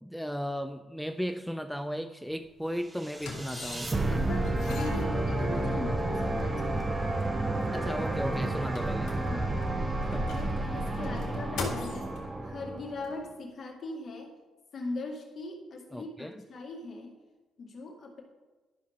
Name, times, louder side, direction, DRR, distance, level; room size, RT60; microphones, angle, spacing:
voice 1, 0.0-3.9 7.7-9.2 10.0-10.2 15.9-16.3, equal, ahead, 9 dB, 0.3 m, -35 dB
sound 1, 2.3-2.4 3.1-4.1 4.4-5.8 6.6-6.7 6.9-7.0 7.4-9.6 10.0-12.2 13.0-13.1, left 3 dB, 70° left, 1.7 m, -41 dB
sound 2, 3.0-13.2, right 2 dB, 20° right, 0.9 m, -31 dB
voice 2, 4.1-6.9 9.3-9.5 10.1-12.1 12.4-14.3 14.7-17.1 17.6-18.2, left 2 dB, 50° left, 0 dB, 1.9 m, -40 dB
11.5 x 5.8 x 3.6 m, 1.2 s
cardioid pair, 90°, 0 cm